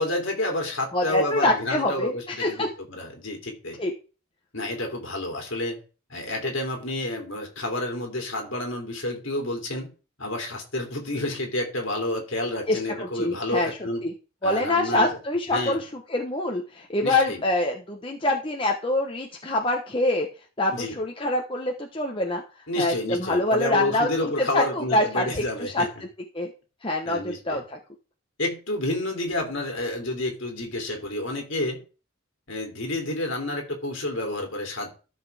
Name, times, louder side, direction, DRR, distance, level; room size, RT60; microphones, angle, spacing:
voice 1, 0.0-3.8 4.5-5.8 6.1-9.9 10.2-14.0 14.4-15.2 15.5-15.8 17.0-17.4 20.7-20.9 22.7-25.9 27.0-27.6 28.4-31.8 32.5-34.9, left 1 dB, 60° left, 1 dB, 2.9 m, -29 dB
voice 2, 0.9-2.7 3.8-3.9 12.7-14.1 14.4-20.3 20.6-22.4 22.8-25.8 26.3-26.5 26.8-27.8, left 2 dB, 25° left, 1 dB, 1.0 m, -25 dB
13.5 x 6.1 x 3.5 m, 0.35 s
head